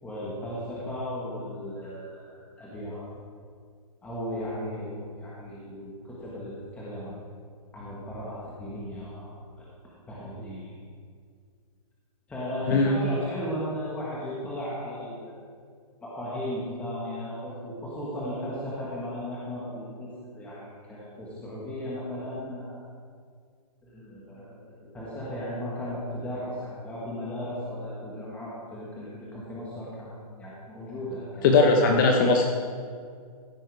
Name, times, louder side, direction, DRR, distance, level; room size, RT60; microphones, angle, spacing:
voice 1, 0.0-3.0 4.0-7.1 7.7-9.7 10.1-10.7 12.3-15.4 16.0-22.8 23.8-31.6, equal, 5° left, -7 dB, 1.5 m, -36 dB
voice 2, 31.4-32.5, left 3 dB, 30° left, 2 dB, 0.8 m, -19 dB
14.5 x 6.2 x 4.7 m, 2.1 s
hypercardioid pair, 155°, 20 cm